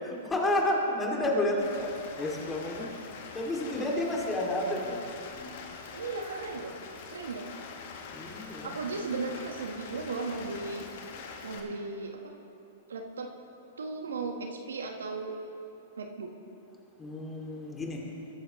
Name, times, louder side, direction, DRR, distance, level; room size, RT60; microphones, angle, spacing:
voice 1, 0.0-2.9 3.3-5.0 5.3-5.5 8.1-8.8 17.0-18.0, left 1 dB, 15° left, -1 dB, 2.4 m, -30 dB
Rain, 1.6-11.6, left 5 dB, 55° left, 1.6 m, -44 dB
voice 2, 5.9-6.7 7.1-7.5 8.6-10.8 11.4-12.4 12.9-13.3 13.8-15.3 16.0-16.3, right 3 dB, 80° right, 3 dB, 1.3 m, -36 dB
21.0 x 10.0 x 3.1 m, 2.6 s
hypercardioid pair, 115°, 0 cm